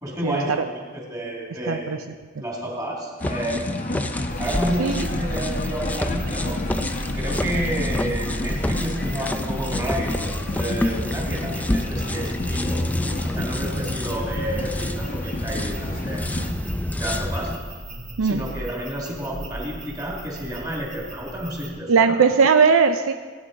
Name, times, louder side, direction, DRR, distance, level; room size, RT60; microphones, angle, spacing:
voice 1, 0.0-3.9 4.4-6.6 7.1-12.9 13.2-16.3 17.0-17.6 18.2-22.2, right 1 dB, 20° right, -3 dB, 2.3 m, -30 dB
voice 2, 1.7-2.0 4.8-5.0 18.2-18.4 21.9-23.1, right 5 dB, 75° right, 8 dB, 0.5 m, -18 dB
sound 1, 3.2-16.5, left 2 dB, 40° left, 0.9 m, -31 dB
sound 2, 3.2-17.6, left 1 dB, 5° left, 0.4 m, -29 dB
sound 3, 4.3-21.7, equal, 35° right, 2.6 m, -35 dB
16.0 x 9.0 x 4.0 m, 1.5 s
head